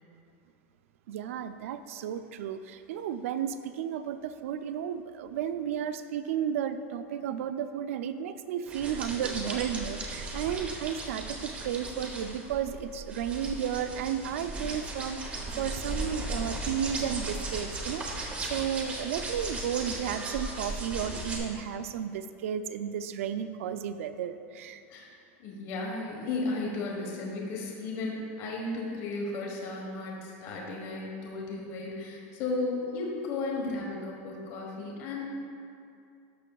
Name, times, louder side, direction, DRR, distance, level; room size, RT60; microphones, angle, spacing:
voice 1, 1.1-24.8, right 9 dB, 80° right, 10 dB, 0.4 m, -33 dB
sound 1, 8.7-21.4, right 2 dB, 15° right, 0.8 m, -37 dB
voice 2, 25.4-35.3, left 3 dB, 40° left, -2 dB, 1.2 m, -34 dB
12.0 x 6.7 x 2.3 m, 2.4 s
supercardioid pair, 155°, 7 cm